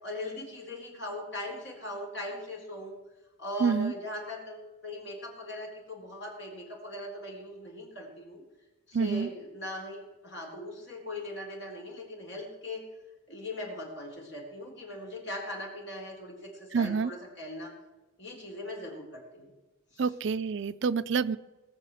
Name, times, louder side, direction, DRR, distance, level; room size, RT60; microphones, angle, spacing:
voice 1, 0.0-3.0 3.4-8.4 8.9-12.8 13.3-17.7 18.2-19.5 19.9-20.1, left 1 dB, 55° left, -1 dB, 4.3 m, -40 dB
voice 2, 3.6-3.9 8.9-9.3 16.7-17.1 20.0-21.4, right 5 dB, 60° right, 15 dB, 0.4 m, -27 dB
19.0 x 6.5 x 7.7 m, 1.1 s
head